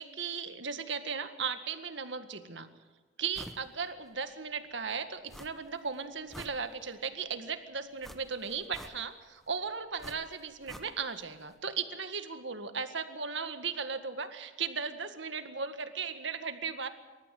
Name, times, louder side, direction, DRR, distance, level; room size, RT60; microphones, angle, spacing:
voice 1, 0.0-2.7 3.2-16.9, right 5 dB, 75° right, 8 dB, 1.9 m, -36 dB
sound 1, 3.3-3.7 4.1-4.2 5.3-5.8 6.1-7.1 8.0-9.3 10.0-11.2 11.5-11.6, equal, ahead, 1.0 m, -49 dB
27.0 x 14.0 x 7.8 m, 1.4 s
head